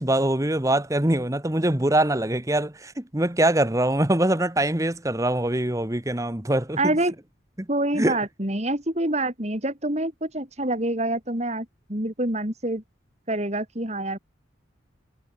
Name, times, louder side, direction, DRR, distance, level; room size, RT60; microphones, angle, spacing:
voice 1, 0.0-6.8 7.6-7.7 7.9-8.2, right 1 dB, 15° right, 1.2 m, -23 dB
voice 2, 6.8-7.1 7.7-12.8 13.3-14.2, right 1 dB, 35° right, 4.1 m, -26 dB
head